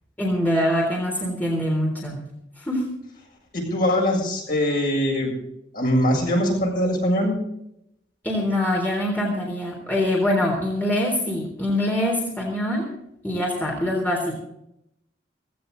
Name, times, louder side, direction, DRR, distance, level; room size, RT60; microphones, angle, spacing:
voice 1, 0.2-2.2 2.6-2.9 8.2-12.9 13.2-14.3, left 1 dB, 10° left, -2 dB, 3.5 m, -24 dB
voice 2, 3.5-5.3 5.7-7.4, equal, 50° left, -1 dB, 7.5 m, -22 dB
16.5 x 16.5 x 4.0 m, 0.78 s
head